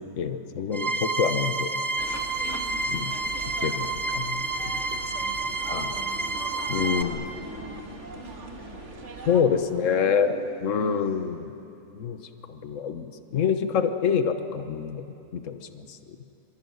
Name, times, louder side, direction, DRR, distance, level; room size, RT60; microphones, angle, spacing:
voice 1, 0.0-1.7 2.9-3.1 3.6-5.0 5.7-5.9 6.7-7.2 9.3-10.3 10.6-11.4 11.9-12.2 12.5-15.1 15.3-16.0, left 7 dB, 60° left, 8 dB, 1.5 m, -26 dB
voice 2, 0.6-0.9 2.3-3.1 5.0-5.4 5.7-6.4 6.8-8.9 9.4-10.3 10.7-11.1 15.5-15.6, left 1 dB, 90° left, -3 dB, 7.4 m, -46 dB
sound 1, 0.7-7.0, right 3 dB, 15° right, 1.7 m, -29 dB
sound 2, 2.0-9.4, right 3 dB, 55° right, 2.2 m, -41 dB
Dog / Siren, 6.1-8.3 8.6-8.7 9.7-11.2, left 1 dB, 40° left, 4.4 m, -46 dB
25.0 x 25.0 x 9.5 m, 2.8 s
omnidirectional pair, 1.5 m